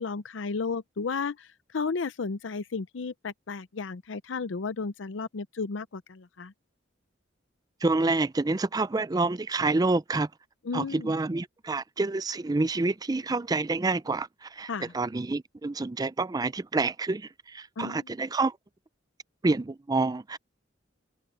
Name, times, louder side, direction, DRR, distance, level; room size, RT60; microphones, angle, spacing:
voice 1, 0.0-6.5 10.6-11.1 14.7-14.9 17.8-18.0, left 4 dB, 75° left, 0.6 m, -33 dB
voice 2, 7.8-10.3 10.7-18.5 19.4-20.4, right 3 dB, 20° right, 0.4 m, -28 dB
open air
head